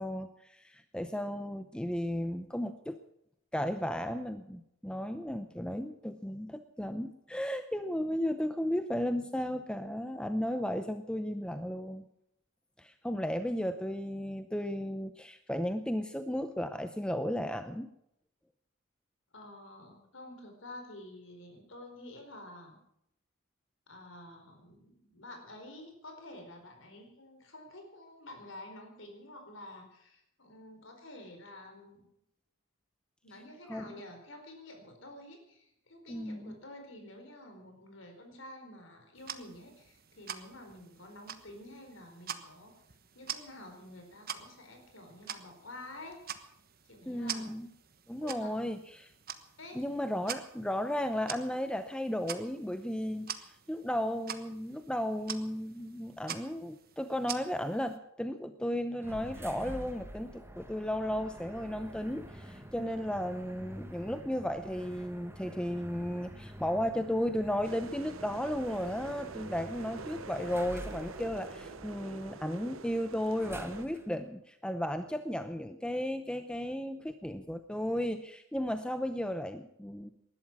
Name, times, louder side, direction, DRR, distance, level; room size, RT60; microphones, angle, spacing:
voice 1, 0.0-3.0 3.5-12.1 12.8-17.9 33.7-34.0 36.1-36.6 47.1-47.7 48.1-49.1 49.7-80.1, equal, 5° left, 9 dB, 0.7 m, -34 dB
voice 2, 19.3-22.8 23.9-32.1 33.2-42.7 43.1-46.5 46.8-47.5 48.2-48.5 49.6-49.8, left 1 dB, 65° left, 4 dB, 4.6 m, -49 dB
sound 1, 39.2-58.0, right 9 dB, 45° right, 1.3 m, -46 dB
sound 2, 59.0-74.2, equal, 10° right, 1.5 m, -48 dB
sound 3, 67.6-73.8, right 4 dB, 75° right, 0.8 m, -46 dB
19.5 x 12.0 x 6.1 m, 0.75 s
head